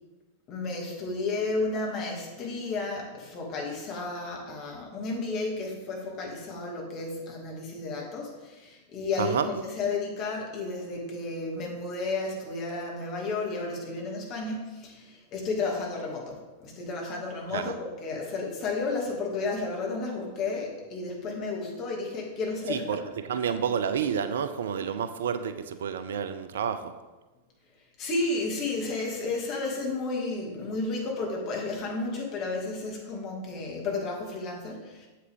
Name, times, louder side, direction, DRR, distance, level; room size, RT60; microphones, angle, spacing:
voice 1, 0.5-23.0 28.0-35.1, left 3 dB, 35° left, -1 dB, 2.3 m, -32 dB
voice 2, 22.7-26.9, right 7 dB, 60° right, 11 dB, 0.5 m, -29 dB
8.3 x 7.7 x 3.7 m, 1.2 s
figure-of-eight pair, 90°, 0 cm